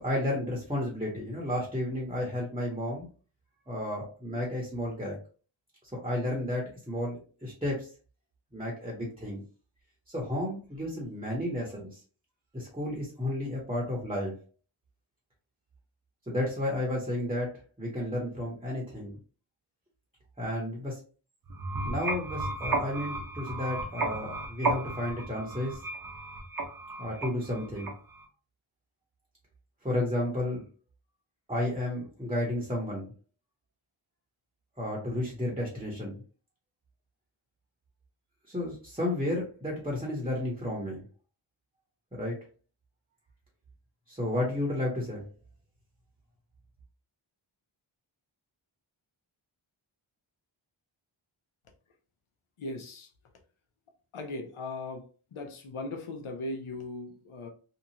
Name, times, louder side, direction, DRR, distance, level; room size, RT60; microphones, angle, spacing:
voice 1, 0.0-3.1 3.7-5.2 6.0-7.9 8.5-9.4 10.1-12.0 12.5-14.3 16.3-19.2 20.4-21.0 21.8-25.8 27.0-27.9 29.8-30.6 31.5-33.1 34.8-36.2 38.5-41.0 42.1-42.4 44.1-45.2, left 1 dB, 10° right, 0.8 m, -32 dB
sound 1, 21.5-28.2, right 2 dB, 45° right, 0.7 m, -34 dB
voice 2, 52.6-53.1 54.1-57.5, left 2 dB, 75° left, 0.7 m, -38 dB
2.8 x 2.3 x 2.8 m
wide cardioid pair, 80°, 49 cm